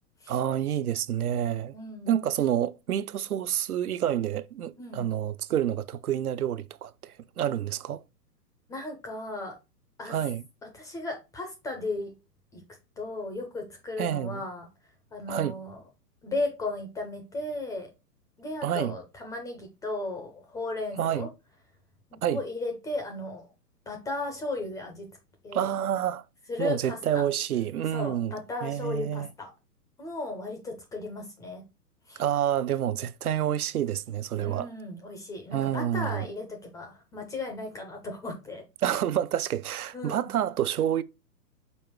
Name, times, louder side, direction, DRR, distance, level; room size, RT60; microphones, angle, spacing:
voice 1, 0.3-1.7 2.1-8.0 10.1-10.4 14.0-14.4 15.3-15.5 18.6-18.9 21.0-21.3 22.2-22.4 25.5-26.2 26.6-28.3 28.6-29.3 32.2-34.7 35.5-36.2 38.8-41.0, right 10 dB, 65° right, 0.6 m, -28 dB
voice 2, 1.7-2.2 4.8-5.1 8.7-9.6 10.0-10.2 10.6-12.1 12.5-12.6 13.0-14.7 15.1-15.8 16.2-17.9 18.4-21.3 22.1-23.5 23.9-25.1 25.4-25.7 26.5-27.3 27.9-29.5 30.0-31.6 32.1-32.2 34.4-38.6 39.9-40.3, left 2 dB, 5° left, 0.5 m, -35 dB
5.5 x 4.4 x 4.5 m
figure-of-eight pair, 115°, 49 cm